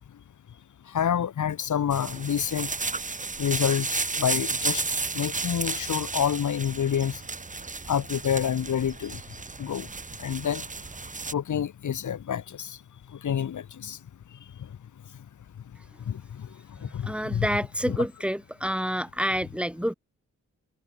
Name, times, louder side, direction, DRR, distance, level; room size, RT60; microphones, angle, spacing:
voice 1, 0.9-2.7 3.4-4.8 5.1-7.2 7.9-9.2 9.6-9.9 10.2-10.7 11.3-12.8 13.1-14.0 16.1-16.5 16.8-17.5 17.9-18.0, left 8 dB, 80° left, 2.1 m, -28 dB
sound 1, 1.9-11.3, right 3 dB, 25° right, 1.1 m, -33 dB
voice 2, 16.8-19.9, equal, 5° right, 3.7 m, -28 dB
cardioid pair, 65°, 30 cm